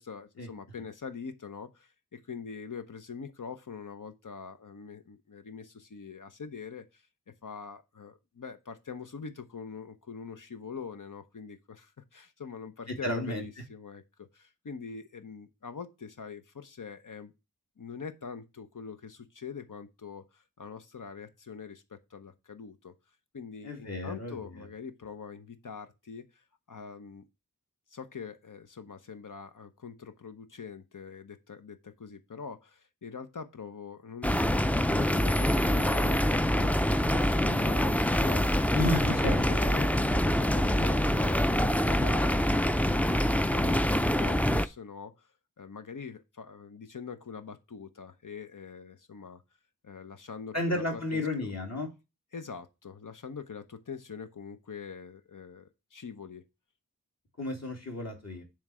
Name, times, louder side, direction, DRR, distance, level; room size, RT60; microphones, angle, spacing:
voice 1, 0.0-7.0 7.4-17.3 17.8-22.9 23.3-27.2 27.9-38.7 39.0-39.1 39.4-43.0 43.3-45.3 45.6-49.4 49.8-51.5 52.3-56.5, left 5 dB, 70° left, 0.8 m, -44 dB
voice 2, 12.9-13.4 23.6-24.7 38.7-39.8 50.5-51.9 57.4-58.4, left 1 dB, 50° left, 2.2 m, -33 dB
sound 1, 34.2-44.7, equal, 5° left, 0.4 m, -25 dB
7.2 x 3.3 x 6.1 m
wide cardioid pair, 45°, 33 cm